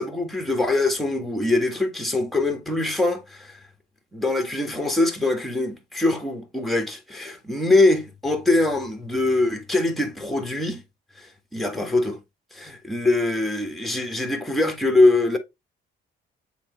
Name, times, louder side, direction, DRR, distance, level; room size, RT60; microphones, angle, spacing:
voice 1, 0.0-3.6 4.1-10.8 11.2-11.3 11.5-12.2 12.5-15.4, left 2 dB, ahead, 1.7 m, -23 dB
7.3 x 4.1 x 3.2 m
cardioid pair, 90°, 20 cm